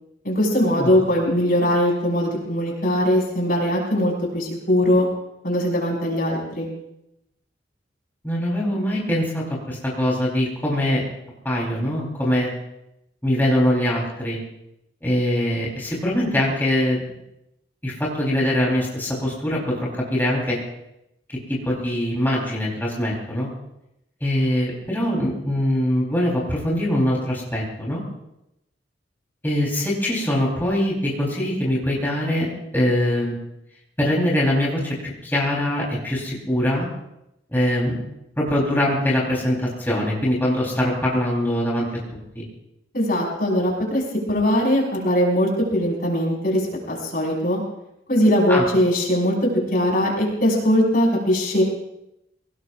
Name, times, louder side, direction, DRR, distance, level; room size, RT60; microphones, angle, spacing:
voice 1, 0.2-5.1 5.4-6.7 42.9-44.0 44.3-46.6 46.9-47.6 48.1-49.4 49.7-51.6, equal, 55° left, -3 dB, 5.7 m, -20 dB
voice 2, 8.2-11.0 11.4-12.5 13.2-14.4 15.0-17.0 17.8-20.6 21.6-23.5 24.2-28.0 29.4-33.3 34.0-36.9 37.5-38.0 38.4-41.8 42.3-42.4 48.5-48.6, left 1 dB, 10° left, -5 dB, 4.4 m, -23 dB
24.0 x 18.5 x 2.7 m, 0.86 s
head